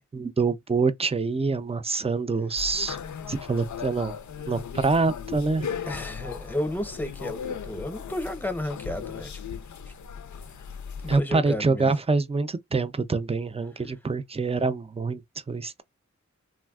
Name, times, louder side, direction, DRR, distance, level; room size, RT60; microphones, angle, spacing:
voice 1, 0.1-3.0 3.3-4.1 4.5-5.7 11.1-15.2 15.5-15.8, right 4 dB, 20° right, 0.4 m, -25 dB
sound 1, 2.6-11.2, left 7 dB, 75° left, 0.5 m, -37 dB
voice 2, 5.9-9.4 11.0-11.9, left 1 dB, 5° left, 0.7 m, -32 dB
3.3 x 2.1 x 2.3 m
wide cardioid pair, 50°, 30 cm